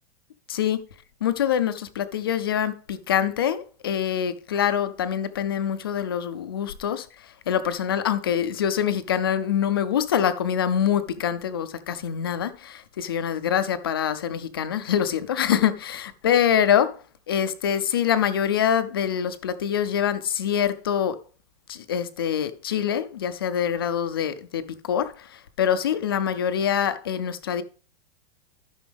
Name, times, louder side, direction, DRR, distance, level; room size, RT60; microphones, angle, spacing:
voice 1, 0.5-0.8 1.2-17.0 17.3-21.2 21.7-27.6, left 9 dB, 25° left, 0.4 m, -25 dB
14.0 x 6.0 x 3.4 m
supercardioid pair, 180°, 31 cm